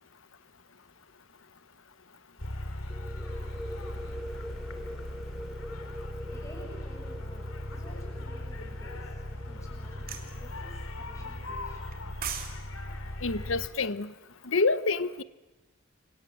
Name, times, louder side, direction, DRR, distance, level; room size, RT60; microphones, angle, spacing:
sound 1, 2.4-13.7, left 1 dB, 90° left, 2.8 m, -38 dB
sound 2, 2.9-10.5, equal, ahead, 0.8 m, -45 dB
voice 1, 5.9-12.4, equal, 15° left, 1 dB, 7.0 m, -52 dB
sound 3, 10.1-10.3 11.9-12.5 12.8-13.0, right 8 dB, 45° right, 2.7 m, -36 dB
voice 2, 13.2-14.1 14.4-15.2, left 3 dB, 70° left, 15 dB, 1.0 m, -27 dB
28.5 x 25.5 x 7.7 m, 1.1 s
head